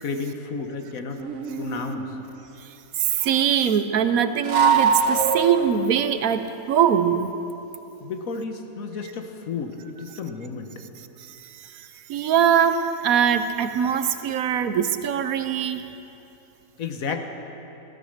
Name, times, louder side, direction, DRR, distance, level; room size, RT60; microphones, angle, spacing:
voice 1, 0.0-1.2 1.6-2.1 8.0-10.7 16.8-17.3, left 4 dB, 70° left, 5 dB, 1.5 m, -32 dB
sound 1, 1.2-2.3 4.4-5.9, right 6 dB, 55° right, 1.4 m, -22 dB
voice 2, 3.0-7.3 12.1-15.8, right 8 dB, 75° right, 10 dB, 1.1 m, -22 dB
15.0 x 13.0 x 6.6 m, 2.9 s
omnidirectional pair, 1.6 m